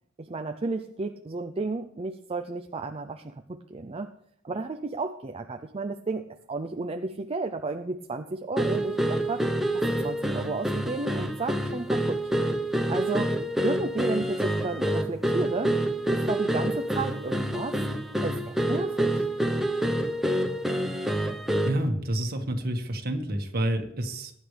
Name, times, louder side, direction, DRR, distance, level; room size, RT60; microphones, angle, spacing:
voice 1, 0.2-4.1 4.4-6.2 6.5-9.5 9.7-12.2 12.9-13.3 13.6-15.7 16.1-17.8 18.2-19.3, right 3 dB, 30° right, 5 dB, 0.5 m, -32 dB
sound 1, 8.6-21.9, right 1 dB, ahead, 0.9 m, -27 dB
voice 2, 21.6-24.3, right 1 dB, 50° right, 4 dB, 1.8 m, -28 dB
21.0 x 10.0 x 3.4 m, 0.72 s
head